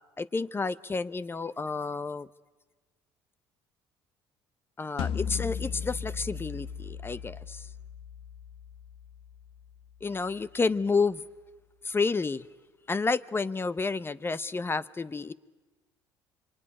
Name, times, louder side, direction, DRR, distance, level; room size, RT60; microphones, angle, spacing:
voice 1, 0.2-2.3 4.8-7.7 10.0-11.2 11.8-12.5 12.9-15.3, left 4 dB, 25° left, 17 dB, 0.9 m, -30 dB
sound 1, 5.0-10.1, left 7 dB, 70° left, 1.2 m, -37 dB
25.0 x 24.0 x 9.9 m, 1.2 s
supercardioid pair, 75°, 10 cm